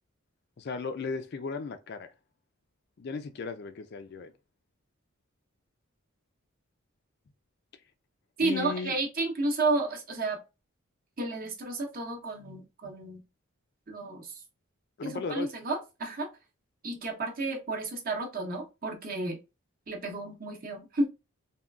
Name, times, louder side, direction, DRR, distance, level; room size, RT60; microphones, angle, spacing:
voice 1, 0.6-2.1 3.0-4.3 8.4-9.0 15.0-15.5, left 4 dB, 50° left, 0.3 m, -36 dB
voice 2, 8.4-10.4 11.2-13.2 13.9-14.4 15.0-16.3 16.8-19.4 19.9-21.1, right 2 dB, 40° right, 0.8 m, -32 dB
3.6 x 2.3 x 2.2 m
head